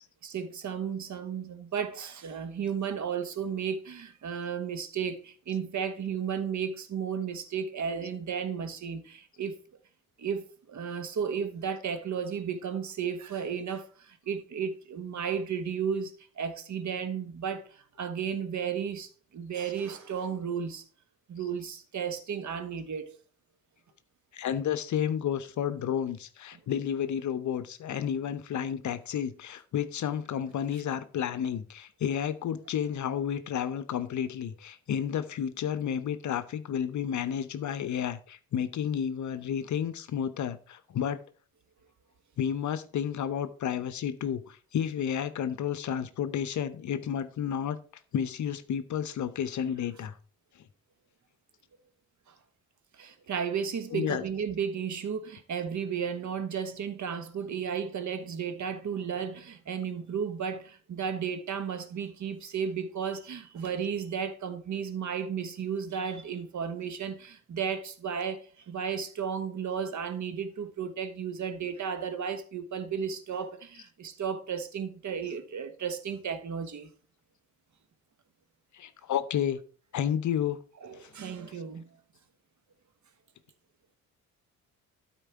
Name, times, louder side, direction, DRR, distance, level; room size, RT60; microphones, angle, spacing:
voice 1, 0.2-9.6 10.2-20.8 21.3-23.1 53.0-76.9 80.8-81.9, right 7 dB, 40° right, 1.3 m, -34 dB
voice 2, 24.3-41.2 42.4-47.8 48.1-50.2 53.9-54.2 78.7-79.6 79.9-80.6 81.0-81.1, left 9 dB, 45° left, 0.8 m, -31 dB
12.5 x 4.5 x 4.6 m
figure-of-eight pair, 45°, 43 cm